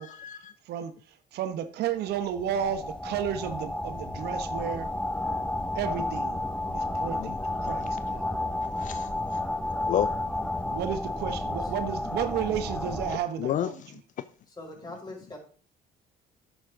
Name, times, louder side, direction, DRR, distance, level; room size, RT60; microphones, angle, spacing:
voice 1, 0.0-0.5 7.1-7.4 7.8-8.0 8.8-9.4 9.8-10.1 13.0-13.8, left 11 dB, 50° left, 0.4 m, -32 dB
voice 2, 0.6-4.9 5.7-6.4 6.7-8.3 10.7-13.8, right 9 dB, 75° right, 1.0 m, -32 dB
sound 1, 2.1-13.2, left 1 dB, 5° left, 0.8 m, -32 dB
voice 3, 14.5-15.4, left 2 dB, 25° left, 5.2 m, -42 dB
11.0 x 7.9 x 3.7 m
cardioid pair, 110°, 17 cm